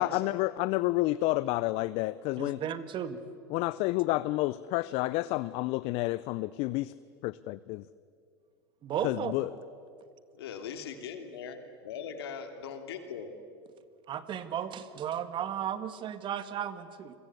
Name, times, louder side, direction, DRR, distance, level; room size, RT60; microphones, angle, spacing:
voice 1, 0.0-2.6 3.5-6.9 7.2-7.8 9.0-9.5, left 19 dB, 50° left, 17 dB, 0.6 m, -30 dB
voice 2, 2.4-3.2 8.8-9.3 14.1-17.1, right 9 dB, 40° right, 12 dB, 1.8 m, -35 dB
voice 3, 10.3-13.3, left 6 dB, 75° left, 7 dB, 3.0 m, -40 dB
29.5 x 22.5 x 8.3 m, 2.3 s
hypercardioid pair, 95°, 13 cm